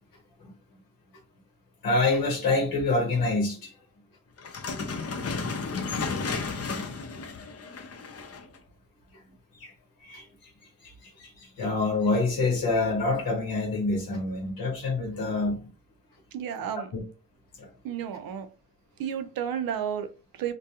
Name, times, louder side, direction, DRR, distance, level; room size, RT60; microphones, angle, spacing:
voice 1, 1.8-3.7 9.5-9.7 10.0-10.5 10.8-15.6 16.9-17.0 17.6-17.7, left 3 dB, 85° left, -1 dB, 0.8 m, -27 dB
sound 1, 4.4-8.6, left 4 dB, 45° left, 0.6 m, -33 dB
voice 2, 16.3-16.9 17.8-18.5 19.0-20.5, right 9 dB, 85° right, 9 dB, 0.5 m, -32 dB
2.3 x 2.2 x 2.8 m, 0.34 s
cardioid pair, 50°, 34 cm